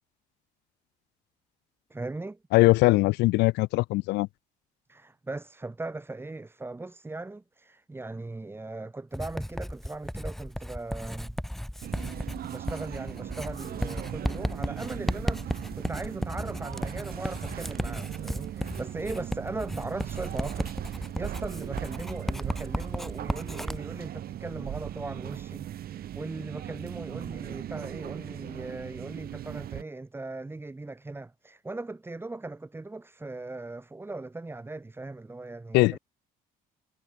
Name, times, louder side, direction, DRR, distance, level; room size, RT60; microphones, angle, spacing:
voice 1, 1.9-2.4 4.9-11.4 12.5-36.0, right 2 dB, 15° right, 2.4 m, -39 dB
voice 2, 2.5-4.3 35.7-36.0, left 21 dB, 90° left, 0.7 m, -21 dB
Writing, 9.1-23.8, equal, ahead, 2.5 m, -34 dB
sound 1, 11.8-29.8, right 12 dB, 65° right, 8.0 m, -38 dB
cardioid pair, 110°, 17 cm